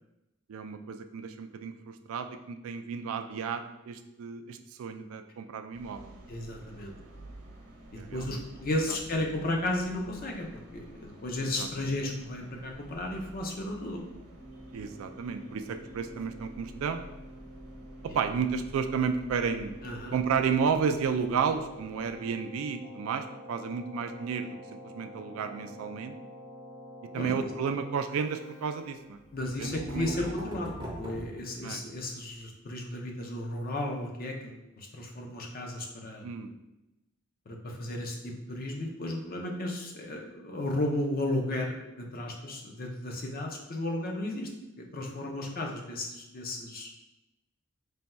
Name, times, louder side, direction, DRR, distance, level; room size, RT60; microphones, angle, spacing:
voice 1, 0.5-6.2 7.9-8.4 11.6-11.7 14.7-17.0 18.0-19.8 20.1-24.5 24.9-26.2 27.1-29.2 29.6-30.3 31.6-31.8 36.2-36.5, right 6 dB, 80° right, 8 dB, 0.3 m, -32 dB
sound 1, 5.7-22.3, right 1 dB, 60° right, 0.8 m, -50 dB
voice 2, 6.3-6.9 7.9-14.0 18.0-18.2 19.8-20.1 27.1-27.5 29.3-36.3 37.5-44.5 44.8-46.9, left 1 dB, 45° left, 1 dB, 0.5 m, -34 dB
Keyboard (musical), 14.4-29.4, equal, 75° left, 1.4 m, -49 dB
sound 2, 29.2-32.2, right 1 dB, 20° right, 0.6 m, -42 dB
3.4 x 2.2 x 4.1 m, 0.95 s
head